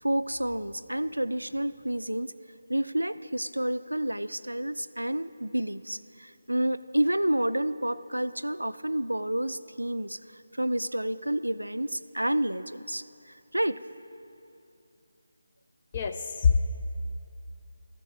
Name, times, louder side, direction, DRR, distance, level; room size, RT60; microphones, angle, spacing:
voice 1, 0.0-2.3 2.7-13.8, right 1 dB, 85° right, 14 dB, 0.3 m, -29 dB
voice 2, 15.9-16.6, left 6 dB, 30° left, 7 dB, 0.3 m, -24 dB
13.5 x 10.5 x 3.6 m, 2.7 s
figure-of-eight pair, 155°, 0 cm